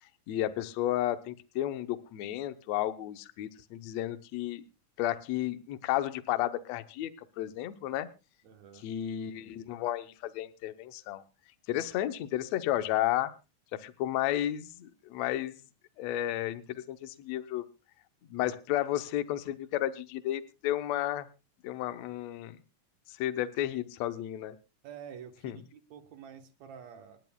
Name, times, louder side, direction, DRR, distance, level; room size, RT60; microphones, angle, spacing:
voice 1, 0.3-4.6 5.0-7.1 7.4-8.1 8.8-11.2 11.7-13.3 13.7-15.6 16.0-17.7 18.3-21.3 21.6-22.6 23.1-24.6 25.4-25.6, left 13 dB, 70° left, 11 dB, 1.7 m, -32 dB
voice 2, 8.4-8.9 24.8-27.2, right 8 dB, 65° right, 6 dB, 2.3 m, -48 dB
26.5 x 10.5 x 2.3 m, 0.28 s
omnidirectional pair, 3.9 m